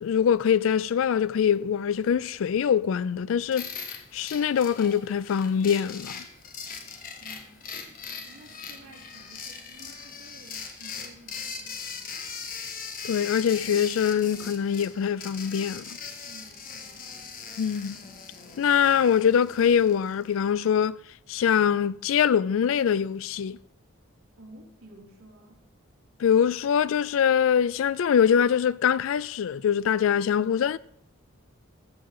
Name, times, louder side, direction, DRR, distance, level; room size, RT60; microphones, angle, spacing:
voice 1, 0.0-3.7 4.1-6.2 13.0-15.8 17.6-18.0 18.6-21.0 21.3-23.6 26.2-30.8, left 8 dB, 70° left, 0.3 m, -23 dB
sound 1, 3.5-20.5, left 6 dB, 40° left, 1.1 m, -40 dB
voice 2, 7.2-7.5 8.2-12.3 16.2-17.1 24.4-25.6, right 1 dB, 85° right, 2.7 m, -52 dB
14.0 x 7.1 x 3.8 m
head